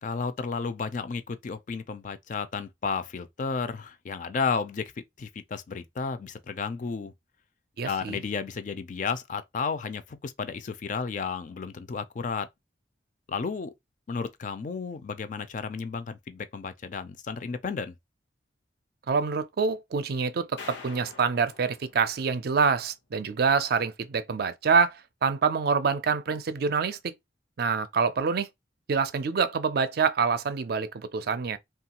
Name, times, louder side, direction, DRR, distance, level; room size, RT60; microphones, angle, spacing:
voice 1, 0.0-4.8 5.2-7.1 7.8-12.5 13.3-13.7 14.1-17.9, left 5 dB, 45° left, 0.4 m, -32 dB
voice 2, 7.8-8.2 19.1-27.1 27.6-28.5 28.9-31.6, right 5 dB, 60° right, 0.4 m, -26 dB
sound 1, 20.6-22.9, left 4 dB, 85° left, 0.8 m, -46 dB
3.0 x 2.3 x 2.8 m
head